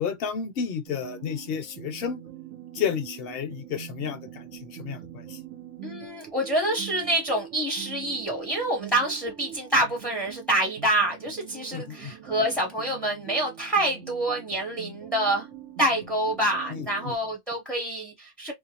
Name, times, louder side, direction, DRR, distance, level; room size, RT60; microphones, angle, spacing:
voice 1, 0.0-2.2 2.7-5.4 11.7-12.1 16.7-17.2, left 7 dB, 65° left, 0.7 m, -32 dB
sound 1, 0.9-17.2, right 9 dB, 90° right, 1.0 m, -43 dB
voice 2, 5.8-15.5 15.8-18.5, right 1 dB, ahead, 0.5 m, -27 dB
2.5 x 2.2 x 2.7 m
omnidirectional pair, 1.2 m